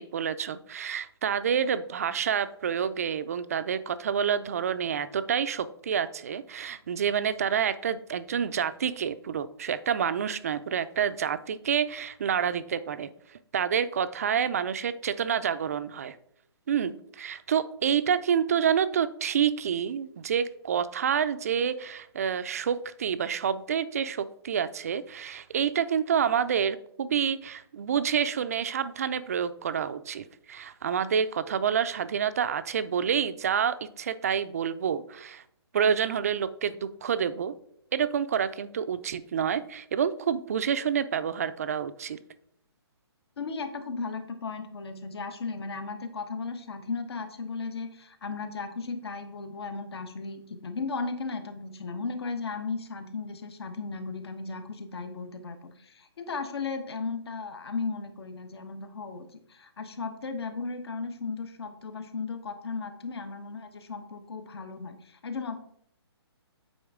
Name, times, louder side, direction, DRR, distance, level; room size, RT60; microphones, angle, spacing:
voice 1, 0.0-13.1 13.5-16.2 16.7-35.4 35.7-37.5 37.9-42.2, right 8 dB, 35° right, 13 dB, 0.3 m, -28 dB
voice 2, 43.4-65.6, left 4 dB, 65° left, 8 dB, 1.1 m, -36 dB
8.6 x 4.3 x 3.6 m, 0.69 s
hypercardioid pair, 165°, 14 cm